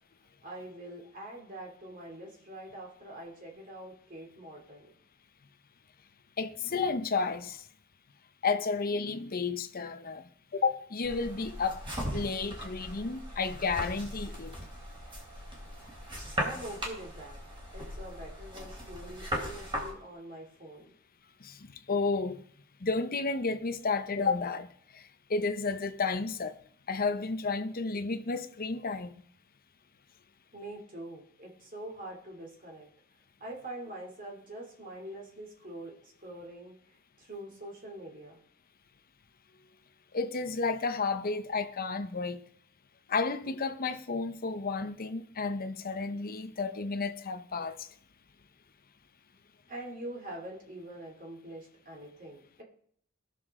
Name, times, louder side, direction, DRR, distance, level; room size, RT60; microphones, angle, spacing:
voice 1, 0.4-4.9 16.3-17.4 17.7-20.9 30.5-32.9 33.4-36.7 37.2-38.4 49.7-52.6, right 1 dB, 40° right, 2.8 m, -44 dB
voice 2, 6.4-7.6 8.4-11.8 12.1-14.6 21.4-22.4 22.8-26.6 26.9-29.3 40.1-42.4 43.1-47.9, left 4 dB, 45° left, 0.8 m, -32 dB
sound 1, 11.0-19.9, equal, 25° right, 3.6 m, -38 dB
18.5 x 6.9 x 3.7 m
head